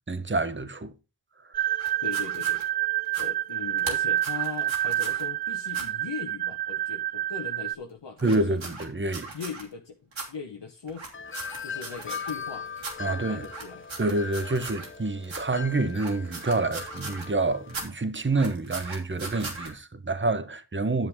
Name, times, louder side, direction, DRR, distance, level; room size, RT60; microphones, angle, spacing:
voice 1, 0.1-0.9 1.4-1.5 8.2-9.3 13.0-13.5 14.0-21.1, right 2 dB, 25° right, 1.1 m, -27 dB
sound 1, 1.5-7.7, right 13 dB, 55° right, 0.5 m, -28 dB
sound 2, 1.8-2.6 3.0-3.3 3.8-5.2 5.7-5.8 8.2-9.6 10.1-10.3 10.9-12.5 12.8-12.9 13.4-15.0 15.2-15.4 15.9-17.3 17.7-17.9 18.2-19.7, right 3 dB, 80° right, 3.1 m, -39 dB
voice 2, 2.0-2.7 3.2-8.7 9.3-10.0 10.3-11.1 11.6-12.7 12.9-13.9, left 5 dB, 65° left, 1.4 m, -39 dB
Wind chime, 11.1-17.9, left 6 dB, 25° left, 0.7 m, -39 dB
10.5 x 7.2 x 3.7 m
cardioid pair, 45°, 46 cm